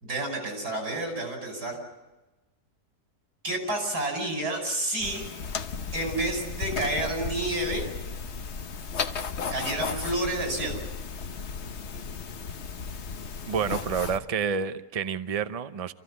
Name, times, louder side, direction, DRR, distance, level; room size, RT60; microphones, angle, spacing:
voice 1, 0.0-1.8 3.4-5.3 5.9-7.9 9.5-10.8, right 1 dB, 80° right, 2 dB, 6.0 m, -30 dB
sound 1, 5.0-14.2, left 5 dB, 50° left, 1.2 m, -35 dB
voice 2, 13.5-15.9, right 6 dB, 35° right, 12 dB, 0.6 m, -29 dB
27.0 x 15.0 x 9.7 m, 1.1 s
omnidirectional pair, 1.7 m